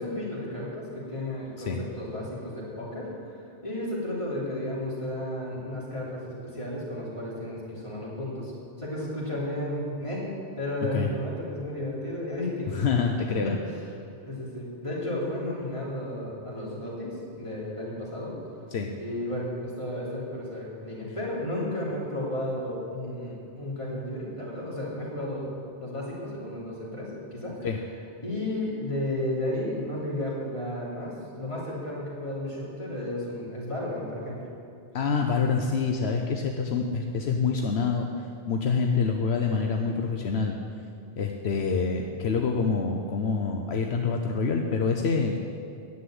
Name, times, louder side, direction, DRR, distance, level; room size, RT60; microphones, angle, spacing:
voice 1, 0.0-8.5 8.8-10.2 10.6-12.8 13.3-13.5 14.3-18.3 19.0-25.5 25.8-27.7 28.2-34.5, left 1 dB, 30° left, -6 dB, 3.4 m, -33 dB
voice 2, 12.7-13.5 18.7-18.9 27.6-27.8 34.9-40.6 41.2-45.3, left 5 dB, 75° left, 3 dB, 1.0 m, -26 dB
9.9 x 7.8 x 9.4 m, 2.5 s
omnidirectional pair, 1.1 m